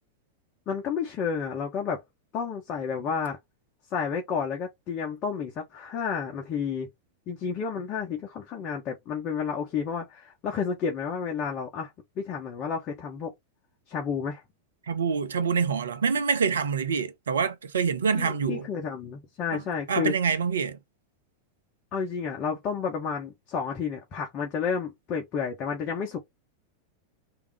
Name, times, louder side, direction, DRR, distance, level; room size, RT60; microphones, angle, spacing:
voice 1, 0.7-2.0 2.3-3.4 3.9-6.9 7.3-11.9 12.2-13.3 13.9-14.4 18.1-20.1 21.9-26.2, left 6 dB, 35° left, 1.2 m, -31 dB
voice 2, 14.9-18.7 19.5-19.6 19.9-20.8, right 6 dB, 65° right, 0.7 m, -26 dB
3.6 x 2.9 x 4.8 m
figure-of-eight pair, 90°, 0 cm